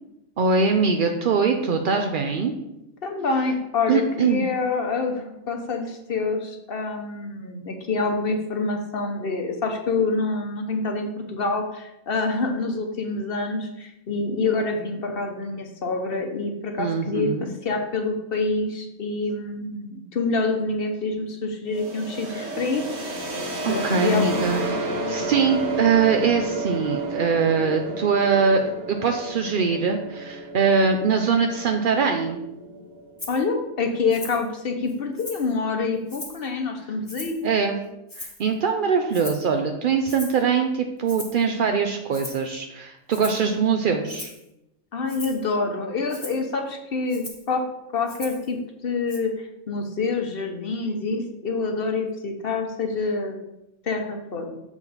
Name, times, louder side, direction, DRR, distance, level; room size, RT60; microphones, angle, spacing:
voice 1, 0.4-2.5 3.9-4.5 16.8-17.5 23.7-32.4 37.4-37.7 38.2-44.3, right 5 dB, 75° right, 4 dB, 0.4 m, -22 dB
voice 2, 3.0-22.8 23.7-24.5 33.3-37.4 44.9-47.6 47.9-53.4 53.8-54.5, left 3 dB, 50° left, 3 dB, 0.9 m, -27 dB
sound 1, 21.7-33.4, right 2 dB, 55° right, 1.3 m, -31 dB
Rattle (instrument), 33.2-33.4 34.1-34.5 34.9-35.5 36.1-36.5 37.1-37.5 38.1-38.5 39.1-39.5 40.1-40.4 41.1-41.4 42.1-42.5 43.1-43.5 44.1-44.4 45.1-45.4 46.1-46.4 47.1-47.5 48.1-48.5 49.1-49.2, left 2 dB, 15° left, 1.0 m, -39 dB
6.9 x 4.8 x 4.0 m, 0.89 s
omnidirectional pair, 1.5 m